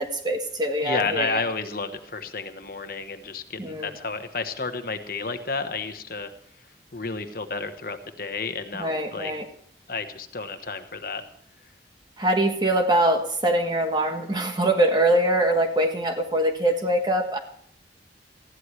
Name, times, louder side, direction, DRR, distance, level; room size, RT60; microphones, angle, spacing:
voice 1, 0.0-1.4 3.6-3.9 8.8-9.4 12.2-17.4, right 1 dB, 25° right, 5 dB, 1.3 m, -23 dB
voice 2, 0.8-6.3 6.9-9.3 9.9-11.2, left 4 dB, 55° left, 8 dB, 1.1 m, -31 dB
19.5 x 14.5 x 3.2 m, 0.65 s
head